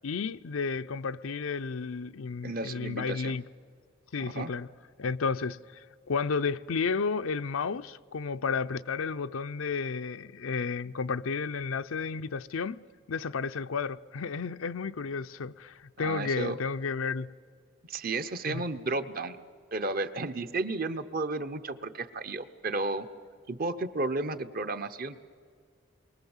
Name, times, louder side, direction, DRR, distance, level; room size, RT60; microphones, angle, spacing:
voice 1, 0.0-3.4 4.1-4.7 5.0-12.8 13.1-17.3 18.5-18.6, left 5 dB, 80° left, 0.6 m, -32 dB
voice 2, 2.4-3.3 4.2-4.5 16.0-16.6 17.9-19.4 19.7-23.1 23.5-25.2, right 3 dB, 45° right, 0.9 m, -33 dB
29.0 x 23.0 x 7.2 m
head